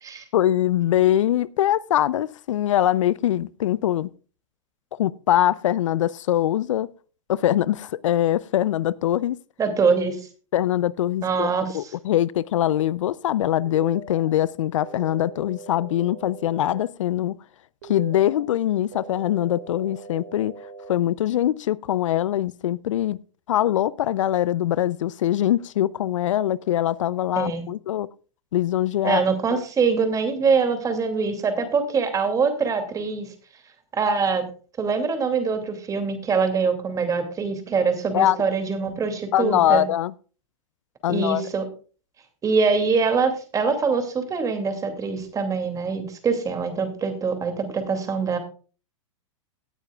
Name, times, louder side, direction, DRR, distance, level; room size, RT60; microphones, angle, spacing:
voice 1, 0.3-4.1 5.0-6.9 7.3-9.4 10.5-17.3 17.9-20.5 20.9-23.2 23.5-28.1 28.5-29.2 29.5-29.6 38.1-38.4 39.3-40.1 41.0-41.4, left 12 dB, 75° left, 0.5 m, -23 dB
voice 2, 9.6-10.2 11.2-11.9 27.4-27.6 29.0-33.3 33.9-34.5 34.8-39.8 41.1-41.7 42.4-48.4, right 5 dB, 20° right, 2.5 m, -24 dB
sound 1, 13.7-14.3 14.8-16.8 17.8-18.4 18.9-20.9, right 5 dB, 65° right, 2.4 m, -41 dB
17.5 x 9.1 x 2.3 m
hypercardioid pair, 120°, 17 cm